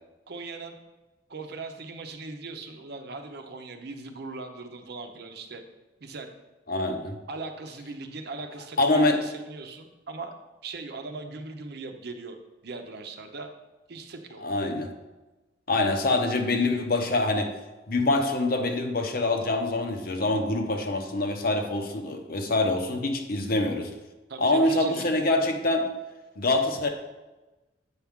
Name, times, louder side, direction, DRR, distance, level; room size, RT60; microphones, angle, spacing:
voice 1, 0.3-0.8 1.3-5.6 6.0-6.3 7.3-10.3 10.6-12.4 12.6-13.5 13.9-14.4 24.3-25.2, right 3 dB, 65° right, 6 dB, 0.7 m, -39 dB
voice 2, 6.7-7.2 8.8-9.2 14.4-14.9 15.7-17.5 17.9-23.9 24.4-25.9 26.4-26.9, left 2 dB, 55° left, 4 dB, 0.9 m, -25 dB
7.9 x 5.9 x 3.6 m, 1.1 s
head